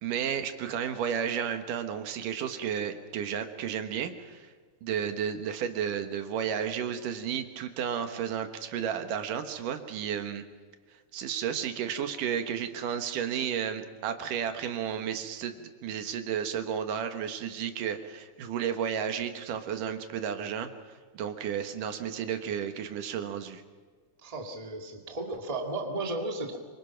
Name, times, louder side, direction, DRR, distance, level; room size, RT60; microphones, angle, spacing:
voice 1, 0.0-4.5 4.8-10.4 11.1-20.7 21.1-23.6, right 8 dB, 80° right, 8 dB, 3.0 m, -32 dB
voice 2, 24.2-26.6, right 2 dB, 15° right, 3 dB, 1.6 m, -34 dB
26.0 x 24.0 x 5.8 m, 1.5 s
omnidirectional pair, 3.7 m